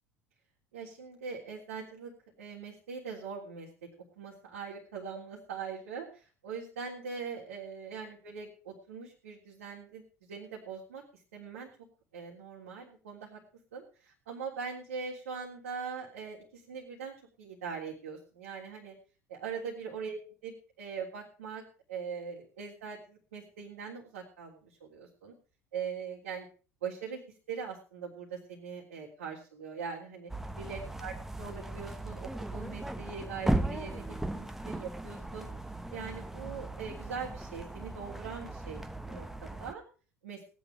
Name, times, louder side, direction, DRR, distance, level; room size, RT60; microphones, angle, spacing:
voice 1, 0.7-2.1 2.4-3.7 4.2-11.0 11.3-11.7 12.1-13.4 13.7-18.9 19.3-21.6 21.9-25.3 25.7-26.5 26.8-27.2 27.5-30.3 30.6-31.1 31.4-35.5 35.9-39.8 40.2-40.4, right 6 dB, 70° right, -5 dB, 3.4 m, -41 dB
sound 1, 30.3-39.7, right 1 dB, 5° right, 1.1 m, -37 dB
18.0 x 10.5 x 4.9 m, 0.37 s
figure-of-eight pair, 65°, 8 cm